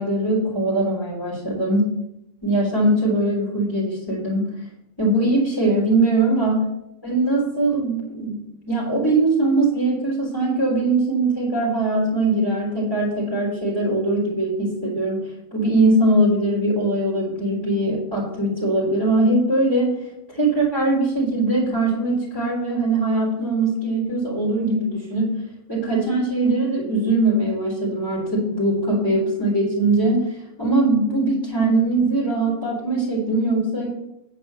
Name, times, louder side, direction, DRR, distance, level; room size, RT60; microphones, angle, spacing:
voice 1, 0.0-1.9 2.4-4.5 5.0-6.6 7.0-8.4 8.7-19.9 20.3-25.4 25.7-33.9, right 2 dB, 15° left, -10 dB, 3.8 m, -21 dB
9.8 x 5.2 x 6.9 m, 0.84 s
omnidirectional pair, 1.4 m